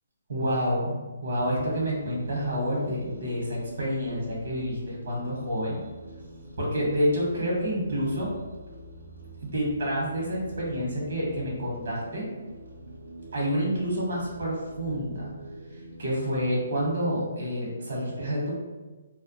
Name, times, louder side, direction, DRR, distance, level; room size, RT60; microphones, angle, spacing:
voice 1, 0.3-5.8 6.6-8.3 9.4-12.2 13.3-15.3 16.0-18.6, equal, 70° right, -4 dB, 0.9 m, -28 dB
sound 1, 1.3-16.9, right 1 dB, 85° right, 0.6 m, -45 dB
2.2 x 2.0 x 2.7 m, 1.2 s
hypercardioid pair, 145°, 0 cm